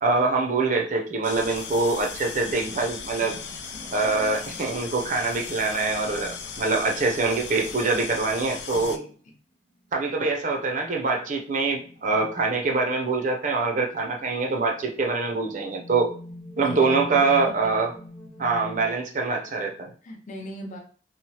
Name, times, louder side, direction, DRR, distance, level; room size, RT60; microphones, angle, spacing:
voice 1, 0.0-3.3 3.9-9.0 9.9-16.1 16.6-17.9 18.4-19.9, right 3 dB, 45° right, 2 dB, 0.5 m, -24 dB
sound 1, 1.2-9.0, left 6 dB, 85° left, 0.4 m, -37 dB
voice 2, 3.2-3.9 8.7-9.1 16.6-17.8 20.0-20.8, left 1 dB, 45° left, 1 dB, 0.6 m, -40 dB
sound 2, 3.6-7.5 9.8-9.9 10.7-10.8 11.5-12.6 13.5-13.9 14.6-18.9, left 1 dB, 5° left, 0.6 m, -44 dB
2.9 x 2.0 x 2.8 m, 0.43 s
head